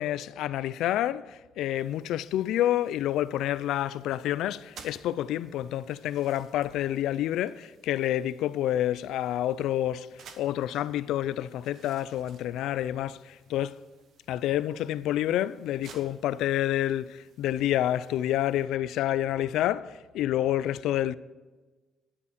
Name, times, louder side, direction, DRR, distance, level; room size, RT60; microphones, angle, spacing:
voice 1, 0.0-13.8 14.3-21.2, left 12 dB, 85° left, 0.4 m, -28 dB
sound 1, 1.7-18.7, right 6 dB, 70° right, 1.2 m, -57 dB
11.0 x 9.6 x 5.0 m
cardioid pair, 90°, 0 cm